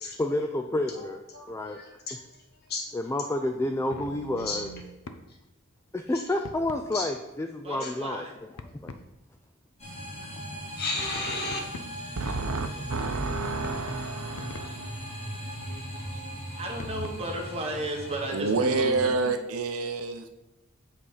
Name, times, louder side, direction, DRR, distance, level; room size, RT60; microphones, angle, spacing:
voice 1, 0.2-1.2 1.5-1.8 2.9-4.7 5.9-8.3 8.7-8.9, left 1 dB, 10° left, 5 dB, 0.3 m, -29 dB
voice 2, 1.3-2.3 2.7-2.9 3.2-3.4 4.4-4.9 5.3-5.4 6.4-6.5 6.9-7.2 7.8-8.1 10.8-11.6, left 3 dB, 50° left, 0 dB, 1.6 m, -35 dB
sound 1, 3.4-5.3 6.4-6.9 8.6-9.1 11.0-12.1 13.6-14.9 16.8-17.1, left 2 dB, 75° left, 0.6 m, -43 dB
voice 3, 7.6-8.4 16.6-19.3, right 1 dB, 30° right, 0 dB, 1.4 m, -34 dB
sound 2, 9.8-19.1, equal, 30° left, 2.4 m, -39 dB
voice 4, 12.2-15.3 15.7-15.8 18.3-20.3, right 3 dB, 80° right, 8 dB, 0.7 m, -29 dB
7.8 x 4.1 x 5.0 m, 1.0 s
head